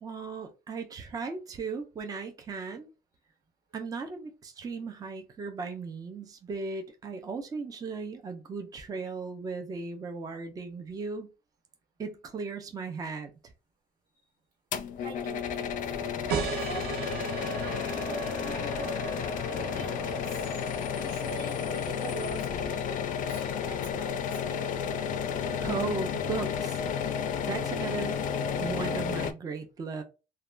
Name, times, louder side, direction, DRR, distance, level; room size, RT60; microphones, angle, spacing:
voice 1, 0.0-2.9 3.7-11.3 12.0-13.3 25.3-26.8 27.5-28.2 28.6-30.0, right 4 dB, 25° right, 0.4 m, -36 dB
sound 1, 14.7-29.3, left 7 dB, 55° left, 0.4 m, -32 dB
voice 2, 15.0-16.0 16.6-20.5 20.9-24.8, right 4 dB, 60° right, 1.5 m, -44 dB
Bus / Idling / Screech, 15.9-23.9, left 3 dB, 20° left, 0.6 m, -47 dB
sound 2, 16.3-21.5, right 6 dB, 80° right, 0.5 m, -37 dB
3.2 x 2.2 x 2.3 m
cardioid pair, 170°, 16 cm